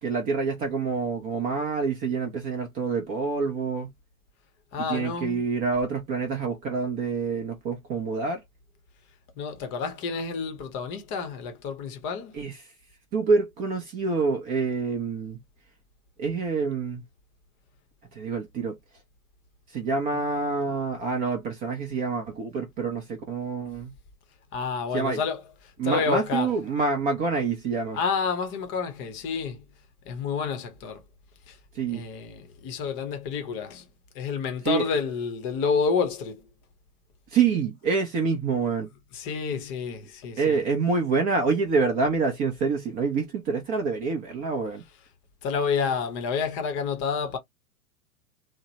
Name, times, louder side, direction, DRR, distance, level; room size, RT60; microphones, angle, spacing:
voice 1, 0.0-3.9 4.9-8.4 12.3-12.5 13.1-15.4 16.2-17.0 18.1-18.8 19.7-23.9 24.9-25.2 25.8-28.0 31.7-32.1 34.7-34.8 37.3-38.9 40.4-44.8, right 4 dB, 20° right, 0.5 m, -27 dB
voice 2, 4.7-5.4 9.4-12.4 20.1-20.2 24.5-26.6 27.9-29.6 30.0-31.0 31.5-31.6 31.9-33.9 34.1-36.5 39.1-40.6 44.8-45.1 45.4-47.4, left 5 dB, 30° left, 0.7 m, -29 dB
2.9 x 2.0 x 2.7 m
figure-of-eight pair, 110°, 43 cm